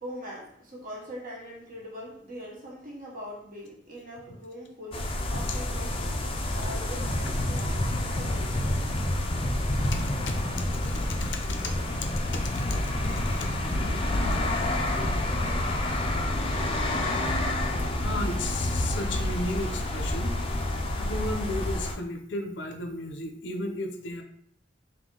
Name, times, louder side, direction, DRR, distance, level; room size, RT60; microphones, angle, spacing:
voice 1, 0.0-6.1 6.5-8.8, equal, 50° right, 1.2 m, -42 dB
sound 1, 4.9-21.9, left 1 dB, 30° left, 0.5 m, -28 dB
voice 2, 9.8-10.4 10.8-11.7 12.3-13.5 15.2-15.3 18.0-20.3 21.0-24.2, left 2 dB, 75° left, 0.7 m, -34 dB
3.6 x 2.7 x 3.8 m
head